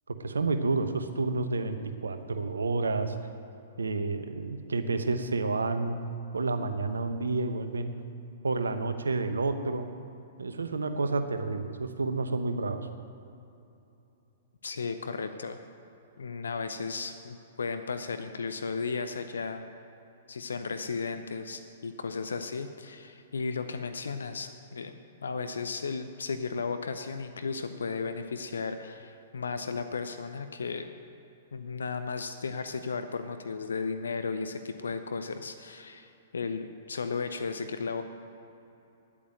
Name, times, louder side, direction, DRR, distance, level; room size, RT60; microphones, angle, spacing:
voice 1, 0.1-3.1 3.8-6.0 6.3-7.9 8.4-9.9 10.4-12.8, right 3 dB, 75° right, 9 dB, 0.9 m, -30 dB
voice 2, 14.6-15.6 16.2-19.7 20.3-30.9 31.5-38.0, left 4 dB, 70° left, 9 dB, 0.7 m, -35 dB
10.0 x 8.7 x 8.9 m, 2.8 s
figure-of-eight pair, 110°, 0 cm